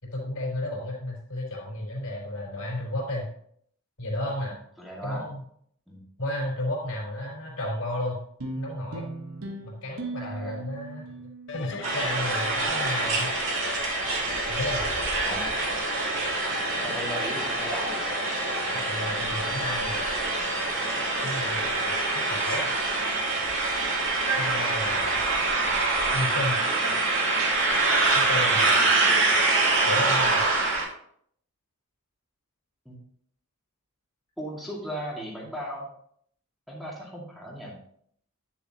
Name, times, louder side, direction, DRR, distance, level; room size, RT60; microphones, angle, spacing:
voice 1, 0.0-3.3 4.0-4.6 5.0-5.4 6.2-8.2 8.6-9.1 9.6-13.3 14.5-14.9 18.8-20.0 21.2-22.7 24.4-25.3 26.1-26.6 28.1-28.9 29.9-30.5, left 1 dB, 75° left, -2 dB, 4.0 m, -32 dB
voice 2, 4.5-5.3 5.9-6.0 10.2-10.6 15.2-15.5 16.8-18.2 28.7-29.3 32.9-33.0 34.4-35.9 36.7-37.7, equal, ahead, -5 dB, 2.2 m, -37 dB
sound 1, 8.4-13.0, right 2 dB, 80° right, 1.2 m, -39 dB
sound 2, 11.5-22.4, left 5 dB, 55° left, 0.7 m, -38 dB
sound 3, 11.8-30.8, right 3 dB, 60° right, 2.5 m, -25 dB
10.0 x 7.1 x 2.9 m, 0.65 s
head